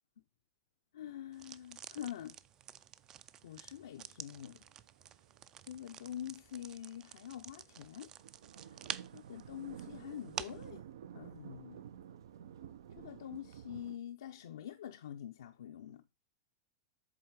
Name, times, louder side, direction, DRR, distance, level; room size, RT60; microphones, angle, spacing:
voice 1, 0.9-2.4 3.4-4.6 5.7-8.1 8.5-8.8 9.1-10.8 11.1-11.8 13.0-16.0, left 10 dB, 85° left, 0.6 m, -46 dB
sound 1, 1.3-10.7, right 10 dB, 25° right, 0.3 m, -49 dB
sound 2, 3.7-3.8 4.0-14.0, right 9 dB, 80° right, 0.5 m, -52 dB
7.7 x 3.6 x 4.7 m
supercardioid pair, 145°, 2 cm